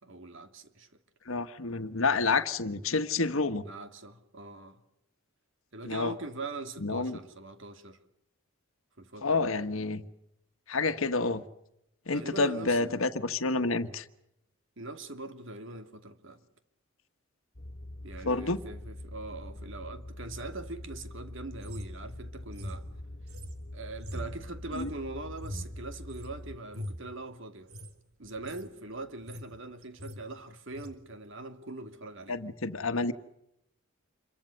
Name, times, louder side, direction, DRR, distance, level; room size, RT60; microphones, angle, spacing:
voice 1, 0.0-0.9 3.6-4.8 5.7-8.0 9.0-9.5 12.1-12.9 14.8-16.4 18.0-22.9 23.7-27.7 28.2-32.4, right 2 dB, 60° right, 2.6 m, -42 dB
voice 2, 1.3-3.7 5.8-6.1 6.8-7.2 9.2-10.0 10.7-11.4 12.1-14.0 18.2-18.6 24.7-24.9 32.3-33.1, left 3 dB, 70° left, 1.4 m, -29 dB
sound 1, 17.6-26.6, left 1 dB, 40° left, 1.4 m, -44 dB
sound 2, 21.6-26.3 26.7-27.1 27.6-27.9 28.2-28.7 29.0-29.6 29.8-30.2 30.7-30.9, equal, 90° right, 3.7 m, -42 dB
28.0 x 23.0 x 6.5 m
head